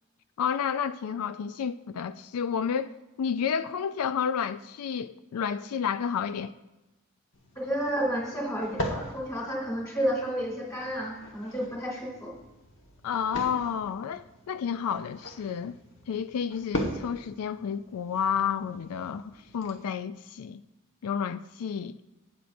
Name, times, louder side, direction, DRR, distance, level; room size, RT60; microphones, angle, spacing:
voice 1, 0.4-2.9 3.2-6.5 13.0-15.8 16.1-20.6 21.0-21.9, left 7 dB, 85° left, 0.4 m, -30 dB
sound 1, 7.3-19.7, equal, 60° left, 1.4 m, -40 dB
voice 2, 7.5-12.3, equal, 15° left, 2.8 m, -31 dB
18.0 x 6.6 x 2.6 m
head